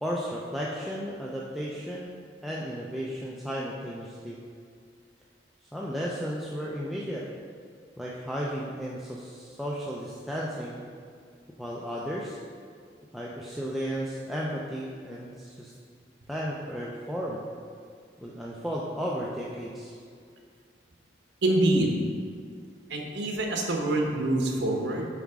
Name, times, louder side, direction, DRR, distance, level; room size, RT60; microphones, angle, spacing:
voice 1, 0.0-2.1 2.4-4.4 5.7-7.2 8.0-10.9 11.6-12.4 13.1-15.7 16.3-17.4 18.2-19.9, equal, ahead, -5 dB, 0.4 m, -34 dB
voice 2, 21.4-21.9 22.9-25.1, right 1 dB, 75° right, 1 dB, 1.0 m, -25 dB
7.1 x 4.9 x 3.6 m, 2.1 s
head